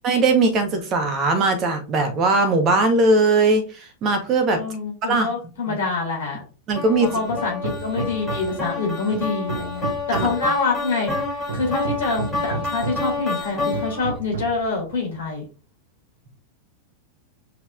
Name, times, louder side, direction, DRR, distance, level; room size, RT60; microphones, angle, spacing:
voice 1, 0.0-4.6 5.1-5.3 5.7-5.8 6.7-7.1 10.1-10.3, right 3 dB, 30° right, 6 dB, 1.1 m, -19 dB
voice 2, 4.5-6.4 7.1-11.1 11.5-15.4, left 3 dB, 60° left, 0 dB, 2.3 m, -26 dB
sound 1, 6.8-14.2, left 3 dB, 15° left, 2.5 m, -29 dB
Hammer, 7.3-8.7 9.1-10.5 11.1-13.2 13.7-14.7, right 5 dB, 65° right, 0.7 m, -32 dB
6.1 x 2.9 x 2.5 m, 0.34 s
figure-of-eight pair, 90°, 0 cm